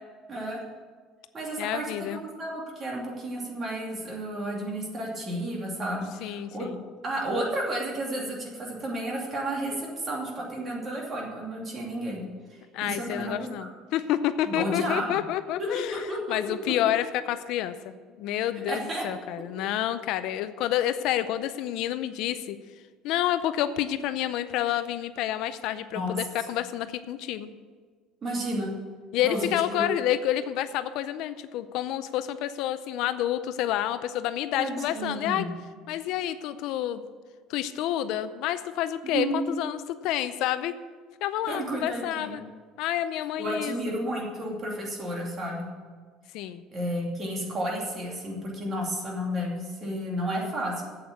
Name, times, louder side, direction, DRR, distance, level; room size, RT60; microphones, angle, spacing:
voice 1, 0.3-0.6 1.3-6.7 7.0-12.2 12.8-13.7 14.4-15.2 15.6-16.4 16.7-16.8 18.7-19.1 25.9-26.1 28.2-28.7 29.2-29.9 34.6-35.5 39.1-39.4 41.5-42.4 43.4-45.7 46.7-50.8, right 1 dB, 25° right, -2 dB, 2.5 m, -32 dB
voice 2, 1.6-2.2 6.2-6.8 12.7-22.6 23.0-27.5 29.1-35.5 35.9-37.0 37.5-40.8 41.2-42.4 42.8-43.8 46.3-46.6, left 12 dB, 65° left, 12 dB, 0.5 m, -29 dB
8.0 x 7.7 x 8.4 m, 1.5 s
cardioid pair, 160°, 0 cm